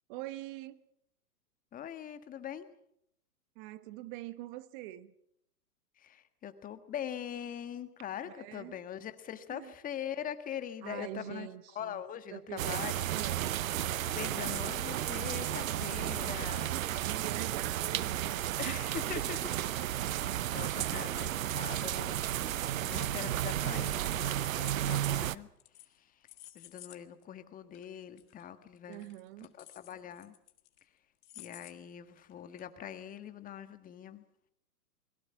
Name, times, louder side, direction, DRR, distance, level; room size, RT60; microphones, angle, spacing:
voice 1, 0.1-0.8 3.5-5.1 8.2-8.8 9.5-9.7 10.8-12.0 12.3-12.8 13.1-13.5 17.0-18.8 19.1-19.4 28.9-29.5, right 16 dB, 35° right, 1.2 m, -44 dB
voice 2, 1.7-2.7 6.0-11.5 11.7-13.1 14.1-17.1 18.6-19.4 19.7-19.8 20.4-22.2 22.8-25.5 26.5-29.1 29.4-30.3 31.4-34.2, left 9 dB, 15° left, 1.6 m, -42 dB
sound 1, 12.6-25.4, right 12 dB, 55° right, 0.9 m, -33 dB
sound 2, 24.0-25.1 25.6-26.0 26.3-27.0 27.2-27.3 27.7-27.8 28.2-28.4 28.8-30.8 31.2-31.7 32.2-32.3 32.6-32.7, left 14 dB, 45° left, 2.0 m, -53 dB
28.5 x 21.5 x 5.9 m
hypercardioid pair, 125°, 47 cm